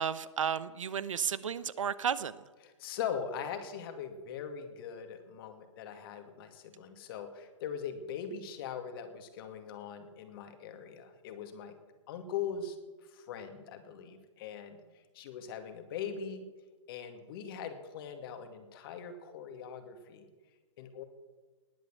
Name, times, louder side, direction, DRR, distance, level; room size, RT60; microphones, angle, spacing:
voice 1, 0.0-2.3, right 7 dB, 80° right, 16 dB, 0.9 m, -33 dB
voice 2, 2.6-11.8 12.1-12.8 13.1-14.8 15.1-16.5 16.9-20.2 20.8-21.0, left 7 dB, 45° left, 7 dB, 2.3 m, -41 dB
19.5 x 9.2 x 7.6 m, 1.3 s
hypercardioid pair, 140°, 16 cm